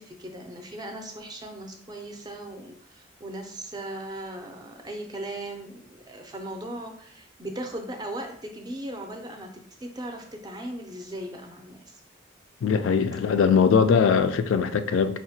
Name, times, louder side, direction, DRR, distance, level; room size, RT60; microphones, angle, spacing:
voice 1, 0.0-9.5 9.8-12.0, right 1 dB, 20° right, 0.4 m, -38 dB
voice 2, 12.6-15.2, left 6 dB, 80° left, 0.3 m, -21 dB
4.7 x 2.1 x 2.7 m
head